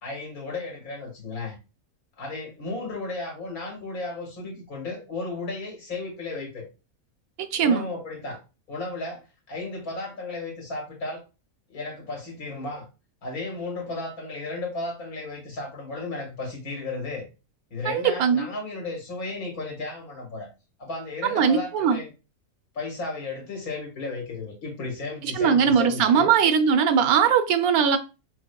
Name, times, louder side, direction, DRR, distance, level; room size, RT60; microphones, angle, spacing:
voice 1, 0.0-1.6 2.2-6.7 7.6-8.4 8.7-9.2 9.5-11.2 11.7-12.9 13.2-17.3 17.7-20.5 20.8-22.1 22.7-26.3, left 3 dB, 75° left, 0 dB, 1.9 m, -34 dB
voice 2, 7.4-7.8 17.9-18.5 21.2-22.0 25.2-28.0, right 7 dB, 80° right, 7 dB, 1.1 m, -20 dB
5.8 x 2.1 x 2.2 m, 0.30 s
omnidirectional pair, 1.5 m